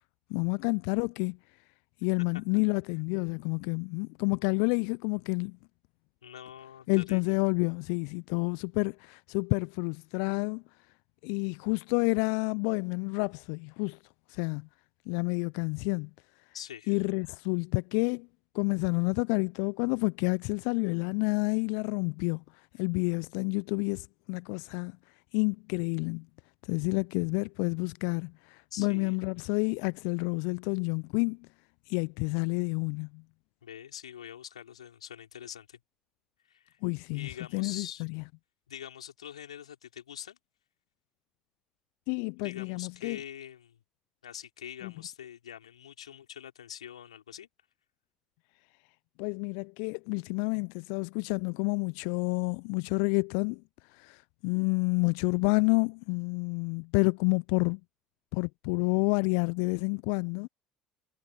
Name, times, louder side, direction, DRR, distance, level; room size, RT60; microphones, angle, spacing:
voice 1, 0.3-1.4 2.0-5.6 6.9-10.6 11.2-14.0 14.3-14.7 15.1-16.1 16.9-18.3 18.5-22.4 22.8-24.9 25.3-26.2 26.7-31.4 31.9-33.2 36.8-38.2 42.1-43.2 44.8-44.9 49.2-53.6 53.9-57.8 58.3-60.5, left 40 dB or more, 65° left, 0.6 m, -29 dB
voice 2, 6.2-7.4 16.5-17.0 28.7-29.2 33.6-35.8 36.5-36.8 37.1-38.0 38.7-40.4 42.4-43.8 44.2-47.5, left 9 dB, 80° left, 5.0 m, -44 dB
figure-of-eight pair, 60°, 3 cm